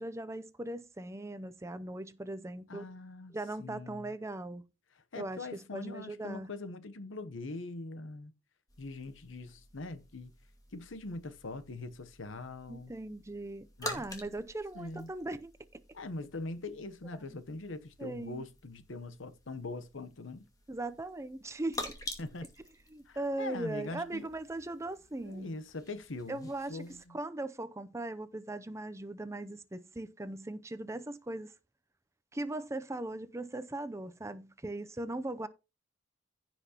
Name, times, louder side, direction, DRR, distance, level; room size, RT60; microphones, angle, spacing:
voice 1, 0.0-2.9 3.3-4.6 5.1-6.5 12.7-15.5 17.1-17.4 18.0-18.4 20.7-22.0 22.9-25.6 26.3-26.8 27.1-31.5 32.3-35.5, right 2 dB, 15° right, 0.5 m, -39 dB
voice 2, 2.7-4.1 5.1-8.3 8.8-10.3 10.7-12.9 13.8-14.0 14.7-15.1 15.9-20.4 22.2-22.5 23.1-24.3 25.2-27.2, left 2 dB, 75° left, 0.9 m, -42 dB
sound 1, 8.7-27.0, left 2 dB, 20° left, 2.2 m, -49 dB
15.5 x 6.0 x 2.9 m
head